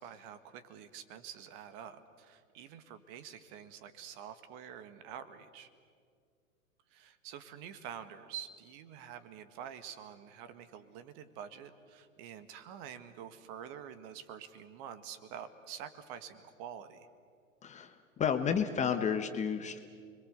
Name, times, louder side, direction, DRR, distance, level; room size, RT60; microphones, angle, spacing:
voice 1, 0.0-5.7 6.9-17.1, right 9 dB, 40° right, 11 dB, 1.8 m, -47 dB
voice 2, 17.6-19.8, left 7 dB, 15° left, 8 dB, 1.1 m, -31 dB
30.0 x 22.0 x 8.1 m, 2.1 s
figure-of-eight pair, 110°, 41 cm